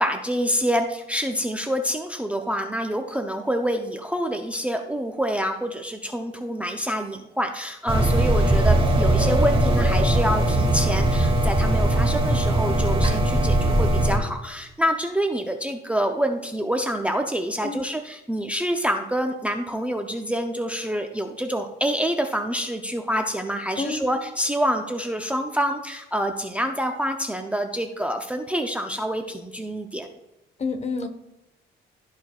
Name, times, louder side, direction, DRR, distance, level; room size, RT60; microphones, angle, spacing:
voice 1, 0.0-30.1, equal, 5° right, 4 dB, 0.6 m, -27 dB
sound 1, 7.9-14.2, right 1 dB, 25° right, 1.7 m, -20 dB
voice 2, 23.8-24.1 30.6-31.1, left 3 dB, 35° left, 7 dB, 1.1 m, -28 dB
13.0 x 4.5 x 2.4 m, 0.92 s
cardioid pair, 90°, 20 cm